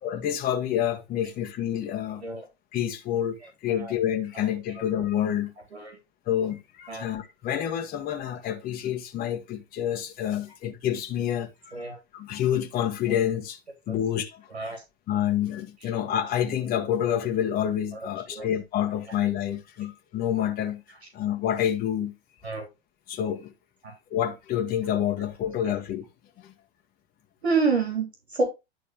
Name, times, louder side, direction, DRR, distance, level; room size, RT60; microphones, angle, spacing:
voice 1, 0.0-2.2 2.7-3.4 3.6-5.5 6.3-13.6 13.9-14.8 15.1-20.8 21.1-22.1 23.1-23.5 24.1-26.0 26.4-26.5, left 10 dB, 30° left, 1.3 m, -28 dB
voice 2, 27.4-28.4, right 4 dB, 85° right, 3.2 m, -28 dB
11.0 x 4.2 x 3.6 m
hypercardioid pair, 100°, 31 cm